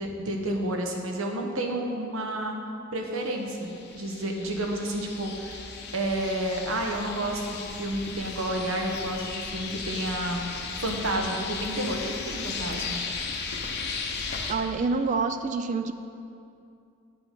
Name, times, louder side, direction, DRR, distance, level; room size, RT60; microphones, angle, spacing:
voice 1, 0.0-2.6 2.9-13.0, right 1 dB, 85° right, 2 dB, 1.2 m, -30 dB
sound 1, 3.6-14.5, left 4 dB, 55° left, 0.8 m, -36 dB
voice 2, 14.5-15.9, right 4 dB, 35° right, 9 dB, 0.3 m, -27 dB
9.5 x 6.9 x 5.3 m, 2.6 s
head